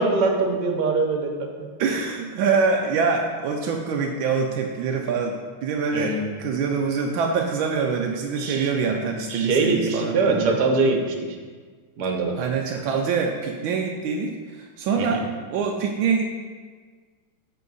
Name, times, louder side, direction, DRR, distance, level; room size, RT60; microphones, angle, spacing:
voice 1, 0.0-1.7 5.9-6.3 8.4-8.7 9.3-11.4 12.0-12.3 15.0-15.2, right 3 dB, 60° right, 2 dB, 1.4 m, -23 dB
voice 2, 1.8-5.4 5.6-10.6 12.3-15.2 15.5-16.3, right 5 dB, 80° right, 2 dB, 1.4 m, -25 dB
8.3 x 4.4 x 4.0 m, 1.5 s
omnidirectional pair, 2.2 m